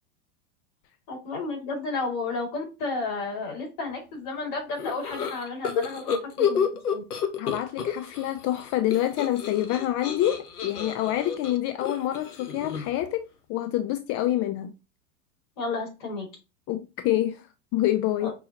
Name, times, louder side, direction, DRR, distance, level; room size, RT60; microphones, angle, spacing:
voice 1, 1.1-6.1 6.4-6.7 6.9-7.0 15.6-16.3 18.2-18.3, left 3 dB, 60° left, 2.7 m, -32 dB
sound 1, 4.8-8.3 8.5-13.0, left 7 dB, 90° left, 0.8 m, -30 dB
voice 2, 7.4-13.2 13.5-14.7 16.7-17.4 17.7-18.3, left 13 dB, 35° left, 0.4 m, -27 dB
5.4 x 2.7 x 2.8 m
hypercardioid pair, 100°, 43 cm